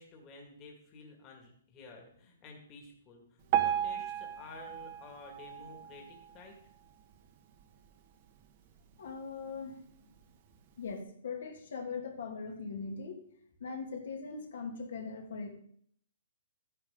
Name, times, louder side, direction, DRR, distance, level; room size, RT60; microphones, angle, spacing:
voice 1, 0.0-6.6, left 3 dB, 25° left, 1 dB, 2.0 m, -52 dB
Piano, 3.5-6.6 7.1-7.3 7.6-7.7 8.4-8.5 9.1-9.2, right 10 dB, 35° right, 1.1 m, -34 dB
voice 2, 9.0-9.8 10.8-13.2 13.6-15.6, left 4 dB, 70° left, 3 dB, 2.3 m, -40 dB
11.5 x 9.9 x 3.8 m, 0.64 s
hypercardioid pair, 160°, 0 cm